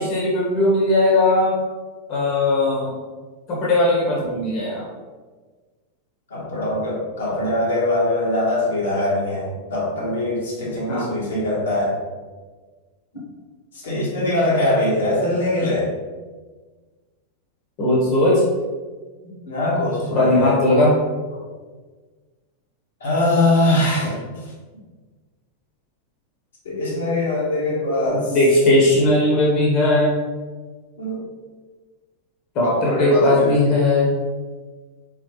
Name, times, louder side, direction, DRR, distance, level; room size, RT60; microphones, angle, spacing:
voice 1, 0.0-1.5 2.1-2.9 3.5-4.8 10.9-11.1 17.8-18.4 20.1-20.9 28.3-30.1 32.5-34.1, left 1 dB, 40° left, -5 dB, 1.3 m, -18 dB
voice 2, 6.3-12.0 13.8-15.9 19.2-20.7 21.3-21.4 23.0-24.2 26.6-28.4 31.0-31.2 32.6-33.6, left 1 dB, 65° left, -6 dB, 1.5 m, -22 dB
4.1 x 4.0 x 3.1 m, 1.4 s
figure-of-eight pair, 90°, 0 cm